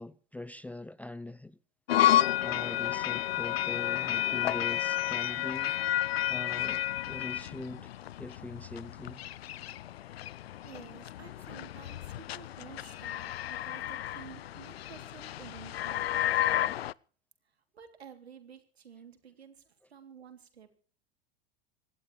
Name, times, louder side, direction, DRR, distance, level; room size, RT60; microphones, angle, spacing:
voice 1, 0.0-1.6 2.1-5.8 6.3-7.9 8.2-9.3, left 2 dB, 5° left, 0.6 m, -42 dB
sound 1, 1.9-16.9, left 13 dB, 70° left, 0.6 m, -31 dB
voice 2, 10.6-16.7 17.7-20.8, right 7 dB, 75° right, 3.2 m, -52 dB
26.5 x 12.0 x 3.3 m
figure-of-eight pair, 85°, 31 cm